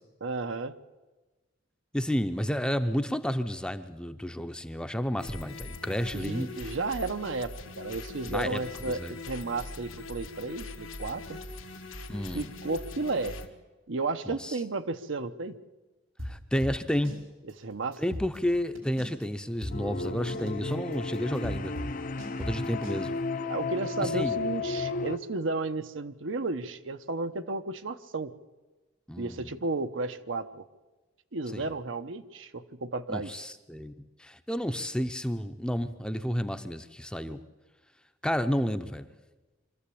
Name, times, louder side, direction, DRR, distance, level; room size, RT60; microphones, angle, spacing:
voice 1, 0.2-0.8 6.1-9.0 9.3-11.4 12.3-13.4 13.9-15.6 17.4-18.0 23.5-28.3 29.2-30.6 31.3-33.3, right 3 dB, 70° right, 9 dB, 0.9 m, -33 dB
voice 2, 1.9-6.5 8.3-9.1 12.1-12.5 14.3-14.6 16.2-17.2 18.0-21.7 22.4-23.1 24.0-24.4 29.1-29.5 31.5-31.7 33.1-33.9 34.2-37.4 38.2-39.1, equal, 5° left, 9 dB, 0.7 m, -31 dB
sound 1, 5.2-13.5, left 2 dB, 80° left, 1.8 m, -42 dB
sound 2, 16.2-17.2 17.5-17.6 17.9-19.2 19.6-23.0, equal, 90° right, 4.9 m, -38 dB
sound 3, 19.7-25.2, left 3 dB, 40° left, 0.6 m, -33 dB
24.0 x 14.0 x 8.5 m, 1.2 s
head